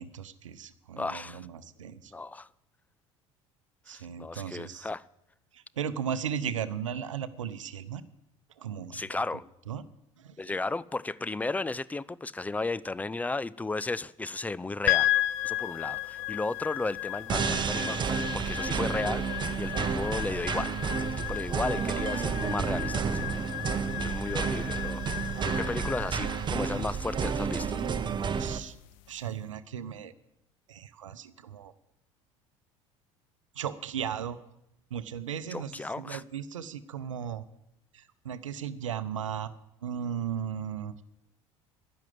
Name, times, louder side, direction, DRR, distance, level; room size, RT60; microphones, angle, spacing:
voice 1, 0.0-2.1 3.9-4.9 5.5-8.0 8.6-9.2 9.7-9.8 10.2-10.4 28.4-28.8 29.1-30.1 30.7-31.7 33.5-34.4 34.9-37.5 37.9-39.5 39.8-41.0, right 8 dB, 75° right, 0.7 m, -36 dB
voice 2, 1.0-1.5 2.1-2.5 3.9-5.1 8.9-9.4 10.4-15.1 15.4-20.7 21.3-23.4 24.0-25.0 25.4-27.8 35.5-36.2, left 3 dB, 10° left, 0.4 m, -34 dB
sound 1, 14.9-29.2, left 17 dB, 55° left, 0.6 m, -34 dB
sound 2, 17.3-28.6, right 6 dB, 30° right, 1.0 m, -31 dB
11.0 x 10.5 x 7.8 m
figure-of-eight pair, 65°, 16 cm